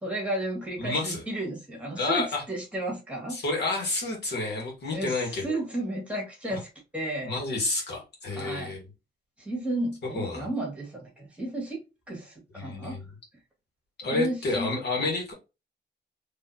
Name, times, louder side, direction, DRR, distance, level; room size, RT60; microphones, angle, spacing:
voice 1, 0.0-3.4 4.9-7.3 8.3-8.7 9.4-13.0 14.1-14.7, right 1 dB, 5° right, 2.1 m, -33 dB
voice 2, 0.8-1.2 2.0-2.4 3.3-5.4 6.5-6.6 7.2-8.8 10.2-10.5 12.6-13.0 14.0-15.3, left 2 dB, 70° left, 1.9 m, -29 dB
4.3 x 3.2 x 2.9 m
wide cardioid pair, 140°, 18 cm